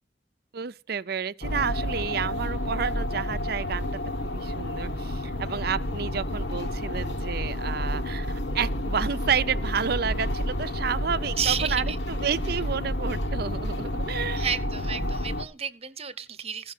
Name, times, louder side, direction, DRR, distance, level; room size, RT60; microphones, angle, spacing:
voice 1, 0.5-3.9 4.2-14.5 15.0-15.1, right 6 dB, 60° right, 0.6 m, -30 dB
sound 1, 1.4-15.4, left 1 dB, 75° left, 1.3 m, -30 dB
voice 2, 11.3-12.0 14.4-16.7, right 7 dB, 35° right, 1.0 m, -31 dB
16.0 x 5.9 x 7.4 m
head